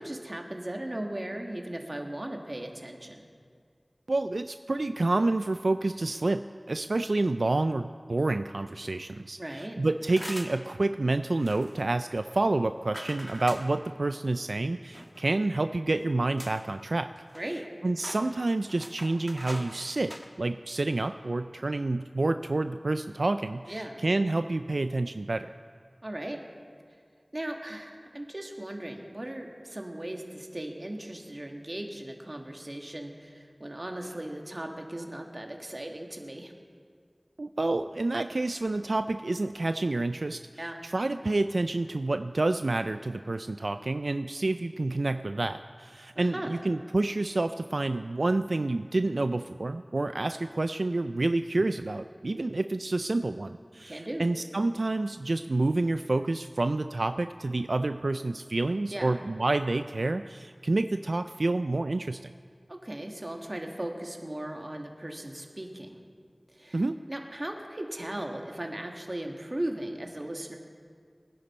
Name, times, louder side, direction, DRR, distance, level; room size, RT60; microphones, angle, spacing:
voice 1, 0.0-3.2 9.4-9.8 17.3-17.6 23.7-24.0 26.0-26.4 27.3-36.5 40.6-40.8 46.2-46.6 53.9-54.3 58.9-59.2 62.7-66.0 66.5-66.8 67.1-70.6, right 1 dB, 45° right, 2 dB, 1.7 m, -37 dB
voice 2, 4.1-17.1 17.8-25.5 37.4-40.4 40.8-62.3 66.7-67.0, right 2 dB, 85° right, 9 dB, 0.3 m, -28 dB
sound 1, 10.0-10.7 11.4-11.8 12.9-13.7 14.9-15.4 16.0-16.1 16.4-16.7 17.0-17.7 18.0-19.7 20.0-20.3, equal, ahead, 1.4 m, -42 dB
23.0 x 10.5 x 4.3 m, 2.1 s
wide cardioid pair, 50°, 0 cm